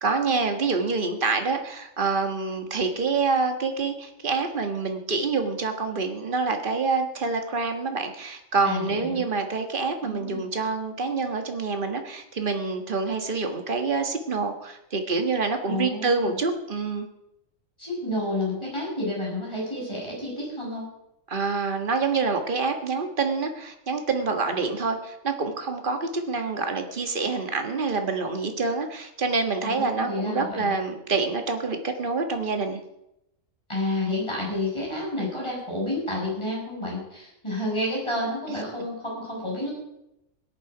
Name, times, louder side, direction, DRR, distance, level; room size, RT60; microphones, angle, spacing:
voice 1, 0.0-17.1 21.3-32.8, right 4 dB, 40° right, 5 dB, 1.7 m, -27 dB
voice 2, 8.6-9.2 10.0-10.4 15.6-16.4 17.8-20.9 29.6-30.7 33.7-39.7, left 1 dB, 20° left, -3 dB, 6.5 m, -30 dB
17.0 x 11.0 x 5.0 m, 0.83 s
omnidirectional pair, 1.4 m